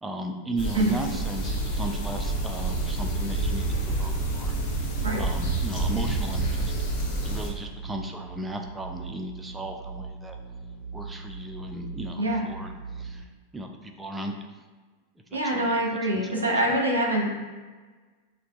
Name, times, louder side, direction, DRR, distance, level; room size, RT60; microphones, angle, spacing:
voice 1, 0.0-4.5 5.2-6.8 7.2-10.4 10.9-13.3 13.5-14.4 15.3-15.7 16.1-16.7, right 1 dB, 10° right, 3 dB, 0.5 m, -36 dB
sound 1, 0.6-7.5, right 2 dB, 50° left, 0.9 m, -28 dB
sound 2, 5.2-13.2, right 4 dB, 25° right, 1.2 m, -41 dB
voice 2, 15.3-17.3, right 1 dB, 75° right, -1 dB, 0.8 m, -25 dB
5.9 x 2.8 x 2.3 m, 1.4 s
figure-of-eight pair, 90°, 0 cm